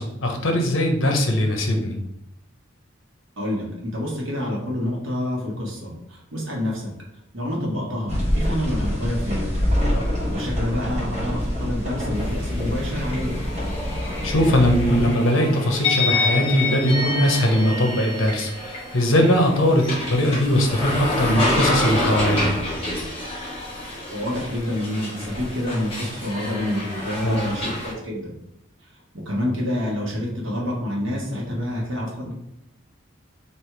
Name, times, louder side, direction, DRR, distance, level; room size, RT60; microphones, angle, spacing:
voice 1, 0.0-2.0 9.8-10.0 14.2-22.5 27.2-27.5, left 1 dB, 80° left, 3 dB, 0.8 m, -20 dB
voice 2, 3.4-6.9 7.3-9.5 10.3-13.3 24.1-28.3 29.2-32.3, left 1 dB, 75° right, -3 dB, 1.3 m, -28 dB
sound 1, 8.1-15.1, equal, 35° right, 1.0 m, -26 dB
sound 2, 12.1-27.9, left 2 dB, 30° left, 1.1 m, -28 dB
3.5 x 2.6 x 4.5 m, 0.82 s
head